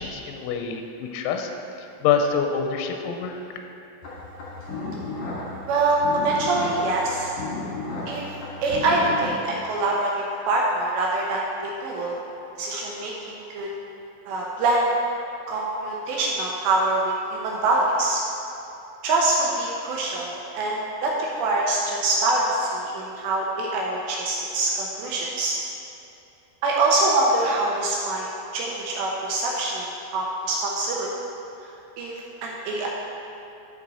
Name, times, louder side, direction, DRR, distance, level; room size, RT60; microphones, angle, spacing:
voice 1, 0.0-1.5 1.8-3.4, left 6 dB, 90° left, 4 dB, 3.3 m, -26 dB
sound 1, 4.0-9.3, left 3 dB, 65° left, 1.9 m, -33 dB
voice 2, 5.7-7.3 8.1-8.2 8.6-12.2 12.6-13.7 14.3-14.9 15.5-18.2 19.0-25.6 26.6-28.3 28.5-31.1 31.6-31.7 32.0-32.1 32.4-32.9, right 2 dB, 80° right, -3 dB, 2.5 m, -24 dB
11.0 x 5.7 x 4.2 m, 2.9 s
omnidirectional pair, 5.9 m